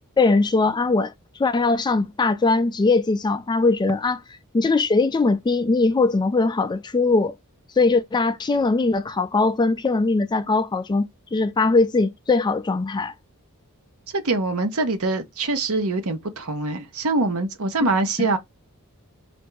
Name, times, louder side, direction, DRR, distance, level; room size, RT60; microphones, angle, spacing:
voice 1, 0.2-1.1 1.4-4.2 4.5-7.4 7.8-13.1, left 3 dB, 20° left, 0.3 m, -20 dB
voice 2, 14.1-18.4, right 3 dB, 70° right, 0.9 m, -24 dB
3.3 x 2.6 x 4.6 m
head